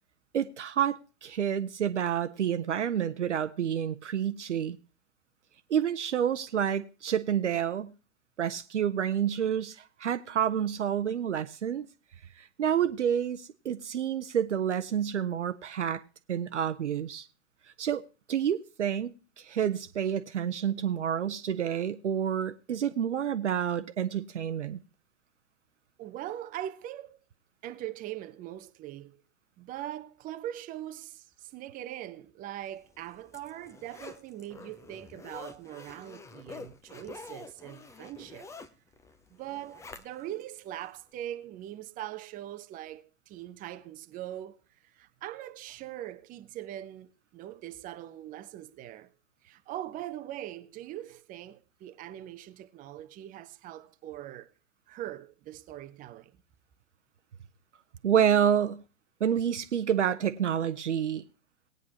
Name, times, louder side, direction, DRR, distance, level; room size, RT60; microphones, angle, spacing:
voice 1, 0.3-4.8 5.7-7.9 8.4-11.9 12.4-16.0 16.3-17.3 17.8-18.0 18.3-24.8 58.0-58.8 59.2-61.2, right 9 dB, 70° right, 0.8 m, -29 dB
voice 2, 26.0-27.2 27.6-29.2 29.6-38.5 39.3-44.6 44.9-49.1 49.4-54.5 54.9-56.4, right 13 dB, 20° right, 0.8 m, -41 dB
Zipper (clothing), 32.8-40.4 40.9-41.0, left 4 dB, 10° left, 0.7 m, -48 dB
19.0 x 9.2 x 2.8 m
figure-of-eight pair, 100°, 37 cm